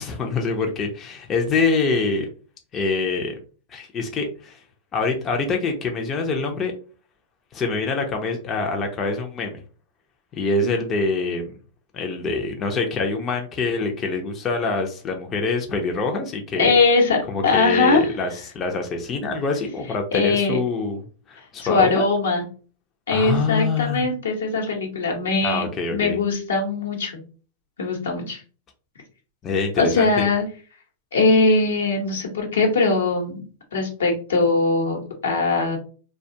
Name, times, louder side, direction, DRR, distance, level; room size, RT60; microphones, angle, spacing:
voice 1, 0.0-2.3 2.7-3.3 3.7-4.6 4.9-6.7 7.5-9.6 10.3-11.5 11.9-16.8 17.3-22.1 23.1-24.1 25.4-26.2 29.4-30.3, left 3 dB, 30° left, 3 dB, 0.5 m, -25 dB
voice 2, 16.6-17.2 17.4-18.1 20.1-20.6 21.6-22.4 23.1-25.7 25.9-27.2 27.8-28.4 29.8-30.4 31.1-33.4 33.7-35.8, left 3 dB, 85° left, 1 dB, 0.9 m, -21 dB
2.3 x 2.2 x 2.7 m, 0.38 s
hypercardioid pair, 115°, 0 cm